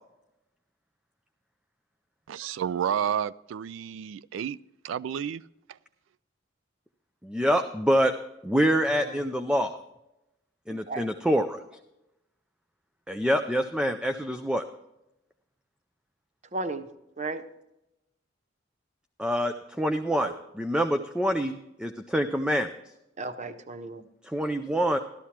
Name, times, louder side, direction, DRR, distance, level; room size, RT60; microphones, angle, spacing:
voice 1, 2.3-4.6 4.8-5.4, right 8 dB, 85° right, 0.3 m, -30 dB
voice 2, 7.2-8.1 8.4-9.8 10.7-11.6 13.1-14.6 19.2-22.7 24.2-25.0, equal, 5° right, 0.4 m, -26 dB
voice 3, 10.7-11.4 16.5-17.5 20.2-20.4 23.2-24.1, right 3 dB, 35° right, 0.7 m, -36 dB
15.0 x 12.5 x 2.9 m
head